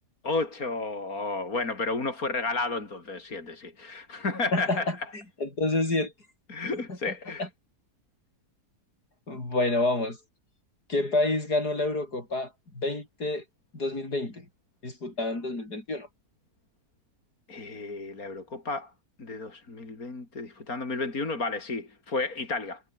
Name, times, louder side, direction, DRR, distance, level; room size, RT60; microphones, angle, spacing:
voice 1, 0.2-5.1 6.5-7.5 17.5-18.9 19.2-22.8, left 3 dB, 65° left, 4.4 m, -32 dB
voice 2, 4.5-5.0 5.4-6.1 6.9-7.1 7.4-7.5 9.3-10.2 10.9-13.4 13.7-14.5 14.8-16.1, left 2 dB, 80° left, 7.0 m, -28 dB
omnidirectional pair, 1.7 m